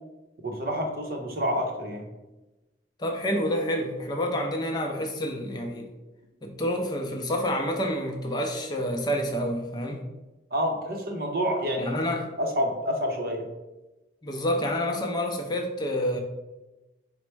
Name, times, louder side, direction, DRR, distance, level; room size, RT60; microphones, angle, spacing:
voice 1, 0.4-2.1 10.5-12.0 12.4-13.5, equal, 55° right, 2 dB, 0.7 m, -28 dB
voice 2, 3.0-5.9 6.4-10.0 11.8-12.3 14.2-16.2, equal, 25° left, 2 dB, 0.4 m, -28 dB
4.3 x 2.0 x 4.5 m, 1.0 s
head